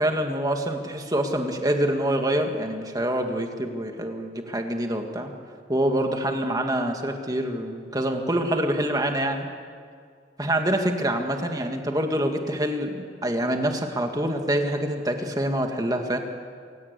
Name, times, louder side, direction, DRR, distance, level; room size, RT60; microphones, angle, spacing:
voice 1, 0.0-5.3 5.7-9.5 10.4-16.2, right 1 dB, 20° right, 4 dB, 2.1 m, -26 dB
27.0 x 17.0 x 8.5 m, 2.1 s
head